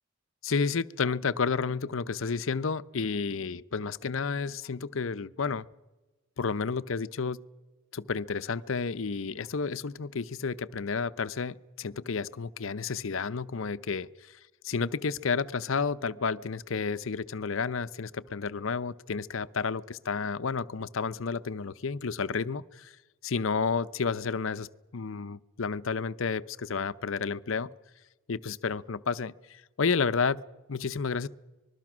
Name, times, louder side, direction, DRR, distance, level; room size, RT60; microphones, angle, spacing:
voice 1, 0.4-5.7 6.4-7.4 7.9-23.0 23.2-27.7 28.3-31.3, left 5 dB, 70° left, 16 dB, 0.7 m, -31 dB
25.5 x 21.0 x 6.2 m, 1.1 s
head